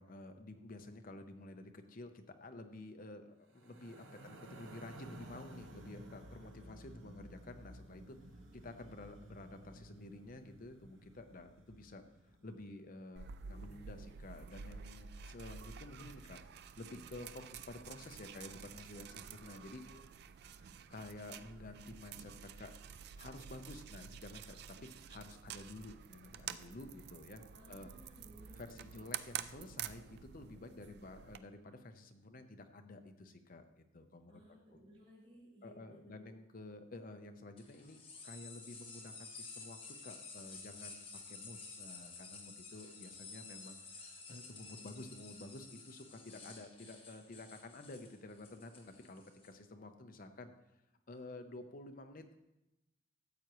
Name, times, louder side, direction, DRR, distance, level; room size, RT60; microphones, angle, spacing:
voice 1, 0.0-8.2 8.5-19.8 20.7-22.7 23.2-27.4 27.7-27.9 28.6-34.8 35.6-50.5 51.1-52.4, left 2 dB, 45° left, 7 dB, 0.8 m, -51 dB
sound 1, 3.5-12.8, right 1 dB, 80° right, 1.0 m, -55 dB
sound 2, 13.2-31.4, right 8 dB, 55° right, 0.4 m, -49 dB
voice 2, 27.5-29.0 34.3-36.3, equal, 30° right, -6 dB, 4.0 m, -60 dB
sound 3, 37.6-49.5, left 4 dB, 30° left, 1.5 m, -52 dB
13.5 x 8.0 x 3.1 m, 0.93 s
head